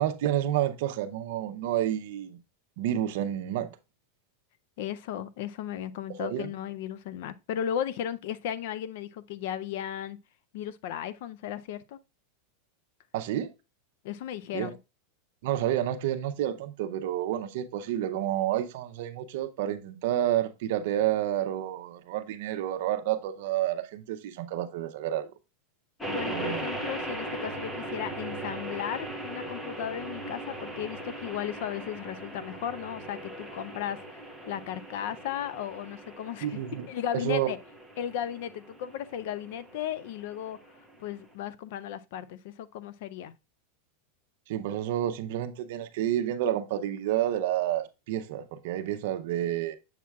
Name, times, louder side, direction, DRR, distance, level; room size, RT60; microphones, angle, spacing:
voice 1, 0.0-2.4 2.8-3.7 6.2-6.5 13.1-13.5 14.5-14.7 15.4-25.3 26.2-26.7 36.4-36.9 37.2-37.5 44.5-49.8, right 12 dB, 60° right, 0.6 m, -29 dB
voice 2, 4.8-10.2 10.5-12.0 14.0-14.8 26.1-36.6 36.9-37.6 38.0-40.6 41.0-43.3, left 10 dB, 55° left, 0.4 m, -35 dB
sound 1, 26.0-41.3, right 1 dB, 5° left, 0.6 m, -39 dB
7.2 x 5.9 x 2.3 m
supercardioid pair, 165°, 0 cm